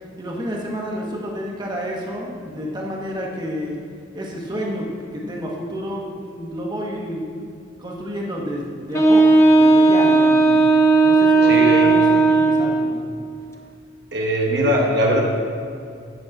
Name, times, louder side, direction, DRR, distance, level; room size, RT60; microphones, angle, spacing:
voice 1, 0.2-3.7 4.1-7.3 7.8-10.6 11.0-13.0, equal, 25° right, -2 dB, 1.4 m, -30 dB
Wind instrument woodwind instrument, 8.9-13.0, right 3 dB, 15° left, 0.7 m, -15 dB
voice 2, 11.4-11.9 14.1-15.2, equal, 65° right, 0 dB, 1.3 m, -20 dB
11.5 x 4.4 x 8.1 m, 2.5 s
head